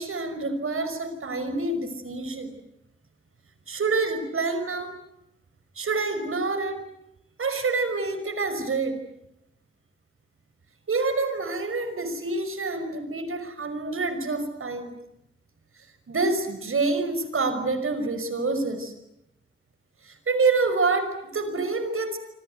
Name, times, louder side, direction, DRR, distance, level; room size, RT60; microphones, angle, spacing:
voice 1, 0.0-2.5 3.7-4.9 5.8-6.8 7.4-9.0 10.9-14.9 16.1-18.9 20.0-22.2, right 3 dB, 85° right, 9 dB, 5.7 m, -27 dB
27.0 x 26.5 x 8.2 m, 0.84 s
wide cardioid pair, 75°, 21 cm